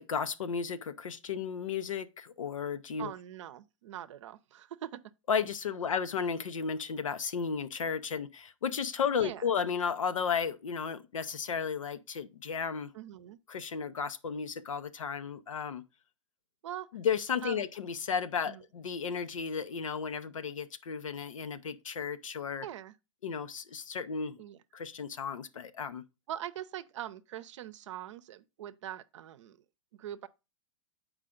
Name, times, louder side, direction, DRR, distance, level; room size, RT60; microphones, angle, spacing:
voice 1, 0.0-3.1 5.3-12.9 13.5-15.8 16.9-22.7 23.2-24.4 24.7-26.0, left 6 dB, 85° left, 0.7 m, -34 dB
voice 2, 3.0-5.1 9.2-9.4 12.9-13.4 16.6-16.9 17.4-17.6 18.5-18.6 22.6-23.0 24.4-24.6 26.3-29.6 29.9-30.3, right 11 dB, 65° right, 0.7 m, -42 dB
7.5 x 4.8 x 3.7 m
hypercardioid pair, 115°, 16 cm